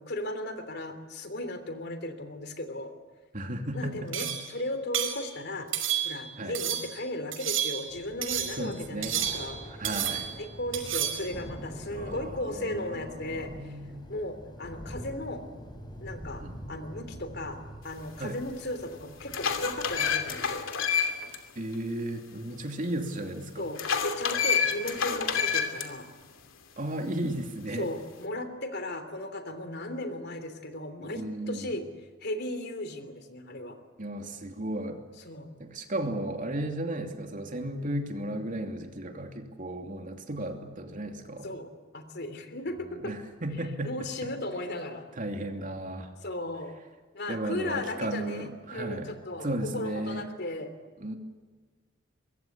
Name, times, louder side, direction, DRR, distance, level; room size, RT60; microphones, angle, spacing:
voice 1, 0.0-2.9 3.7-5.7 6.0-9.6 10.1-13.7 14.1-15.4 16.0-16.4 16.7-17.6 17.8-20.6 23.6-26.1 27.7-31.8 32.2-33.8 35.2-35.5 41.4-43.1 43.8-45.0 46.2-46.7 47.1-50.7, left 1 dB, 55° left, 8 dB, 3.2 m, -36 dB
voice 2, 3.3-4.3 6.4-6.6 8.6-9.2 9.7-10.3 11.8-14.1 16.4-16.6 18.2-18.4 21.5-23.7 26.8-27.9 31.2-31.7 34.0-35.0 35.6-41.5 42.9-43.9 44.2-44.3 45.2-46.1 47.3-50.3 51.0-51.2, right 1 dB, 40° right, 4 dB, 2.8 m, -35 dB
sound 1, 4.1-4.5 4.9-5.2 5.7-6.2 6.5-6.9 7.3-7.9 8.2-8.6 9.0-9.6 9.8-10.4 10.7-11.3, right 10 dB, 85° right, 5.7 m, -31 dB
Thunder / Rain, 7.9-20.8, equal, 20° left, 4.8 m, -45 dB
sound 2, 18.4-18.5 19.0-21.4 21.7-21.8 23.8-25.9, left 6 dB, 80° left, 2.8 m, -28 dB
24.5 x 22.0 x 8.6 m, 1.4 s
head